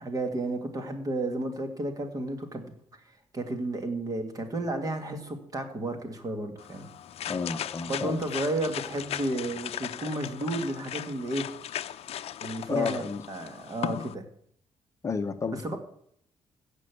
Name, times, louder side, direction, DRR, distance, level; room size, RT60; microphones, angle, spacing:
voice 1, 0.0-2.7 3.3-6.9 7.9-11.5 12.4-13.0 13.3-14.2 15.5-15.8, right 1 dB, 35° right, 6 dB, 1.9 m, -32 dB
sound 1, 6.6-14.1, left 10 dB, 65° left, 0.6 m, -37 dB
voice 2, 7.3-8.2 12.7-13.2 15.0-15.8, left 5 dB, 25° left, 7 dB, 0.7 m, -31 dB
15.0 x 5.4 x 8.3 m, 0.68 s
cardioid pair, 145°, 11 cm